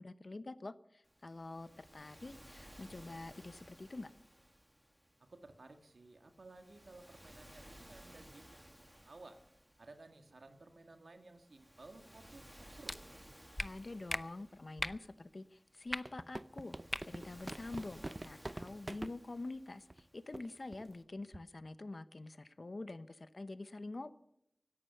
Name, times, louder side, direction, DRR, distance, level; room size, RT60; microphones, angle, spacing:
voice 1, 0.0-4.1 13.6-16.8 17.0-24.1, left 2 dB, 60° left, 13 dB, 0.9 m, -46 dB
Waves surf, 1.0-21.0, equal, 5° right, 2.1 m, -59 dB
voice 2, 5.3-9.4 9.8-13.0, right 2 dB, 85° right, 6 dB, 1.7 m, -57 dB
sound 1, 12.8-13.0 13.6-13.7 14.1-14.2 14.8-15.0 15.9-16.0 16.9-17.0 17.4-17.6, left 1 dB, 20° left, 0.6 m, -38 dB
sound 2, 15.9-19.1 19.9-20.0 20.3-20.5 20.7-20.9 21.3-21.6, right 2 dB, 35° right, 0.6 m, -44 dB
16.5 x 11.5 x 6.8 m, 0.78 s
wide cardioid pair, 60°, 0 cm